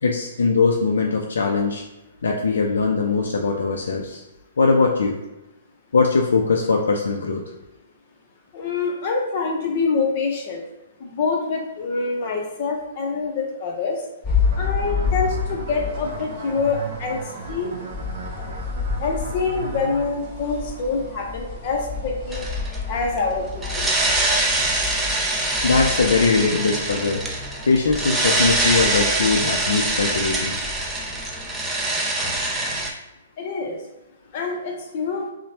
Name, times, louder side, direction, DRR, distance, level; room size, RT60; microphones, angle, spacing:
voice 1, 0.0-1.8 2.2-4.2 4.6-5.2 5.9-7.4 25.6-27.2 27.6-30.6, left 4 dB, 85° left, 0 dB, 0.3 m, -21 dB
voice 2, 8.5-10.6 11.0-14.0 14.6-17.2 17.5-17.7 18.3-18.5 19.0-22.4 22.9-23.9 33.4-33.8 34.3-35.3, left 4 dB, 45° left, 1 dB, 0.6 m, -25 dB
sound 1, 14.2-32.9, left 5 dB, 10° left, 1.1 m, -31 dB
sound 2, 14.4-20.1, right 4 dB, 70° right, 0.5 m, -36 dB
sound 3, 22.3-22.8 23.6-32.9, right 2 dB, 5° right, 0.4 m, -24 dB
3.0 x 2.1 x 2.8 m, 0.98 s
hypercardioid pair, 150°, 0 cm